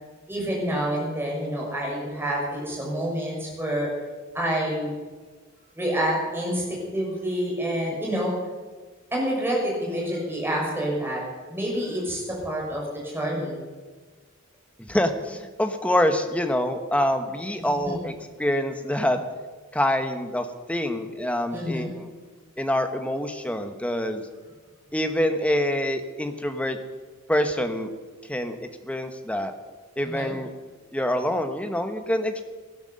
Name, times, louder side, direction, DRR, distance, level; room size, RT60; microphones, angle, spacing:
voice 1, 0.3-3.9 4.3-4.9 5.7-6.6 6.9-8.3 9.1-11.2 11.5-13.6 17.6-18.0 21.5-21.9 30.0-30.3, equal, 10° right, -3 dB, 6.1 m, -28 dB
voice 2, 14.8-19.2 19.7-22.1 22.6-24.2 24.9-26.8 27.3-27.9 28.3-28.6 28.8-29.5 30.0-30.5 30.9-32.4, left 1 dB, 5° left, 6 dB, 1.2 m, -26 dB
18.0 x 11.5 x 6.6 m, 1.4 s
head